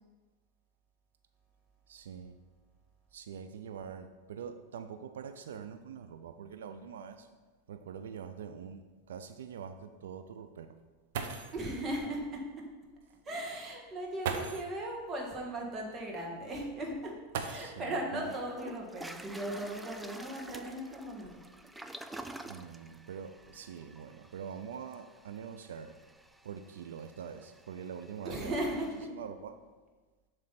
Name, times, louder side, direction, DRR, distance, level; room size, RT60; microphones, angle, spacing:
voice 1, 1.9-2.4 3.1-7.3 7.7-10.8 17.5-18.3 22.5-26.0 26.4-28.8 29.1-29.6, right 7 dB, 90° right, 9 dB, 0.4 m, -44 dB
sound 1, 7.2-7.3 7.7-7.8 8.4-8.5 10.8-10.9 11.1-11.7 13.0-13.1 14.2-14.8 17.3-18.0 19.4-19.5 20.2-21.7 22.4-22.8 23.1-23.5, right 6 dB, 75° right, 0.7 m, -40 dB
voice 2, 11.5-12.7 13.2-17.2 17.4-21.4 28.2-29.1, right 1 dB, 25° right, -1 dB, 1.6 m, -37 dB
Toilet flush, 18.2-29.0, right 2 dB, 5° right, 0.3 m, -50 dB
7.4 x 3.3 x 5.7 m, 1.3 s
supercardioid pair, 125°, 0 cm